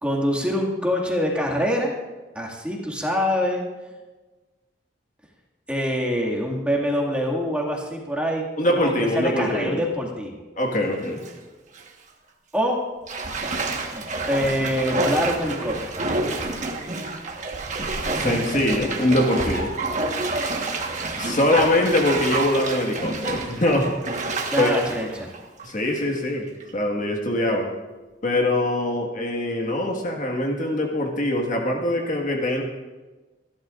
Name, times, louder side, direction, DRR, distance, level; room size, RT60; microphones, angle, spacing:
voice 1, 0.0-1.9 2.4-3.6 5.7-10.4 12.5-12.8 13.9-15.9 24.5-25.3, equal, 5° right, -2 dB, 2.1 m, -25 dB
voice 2, 8.6-9.8 10.6-11.2 18.0-19.7 21.1-23.9 24.6-24.8 25.6-26.5 26.7-27.7 28.2-32.6, left 1 dB, 45° left, 1 dB, 1.7 m, -23 dB
Bathtub (filling or washing), 10.9-11.3 11.8-11.9 13.1-26.2 26.6-26.7, right 3 dB, 40° right, 1.4 m, -28 dB
26.5 x 12.0 x 2.5 m, 1.2 s
head